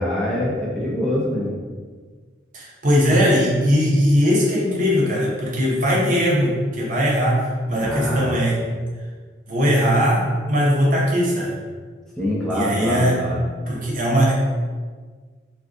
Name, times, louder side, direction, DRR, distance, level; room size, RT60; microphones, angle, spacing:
voice 1, 0.0-1.5 7.8-8.3 12.2-13.4, left 1 dB, ahead, -6 dB, 0.5 m, -24 dB
voice 2, 2.5-8.6 9.5-11.6 12.5-13.2 13.7-14.3, equal, 45° right, -4 dB, 0.7 m, -19 dB
2.5 x 2.3 x 3.6 m, 1.5 s
head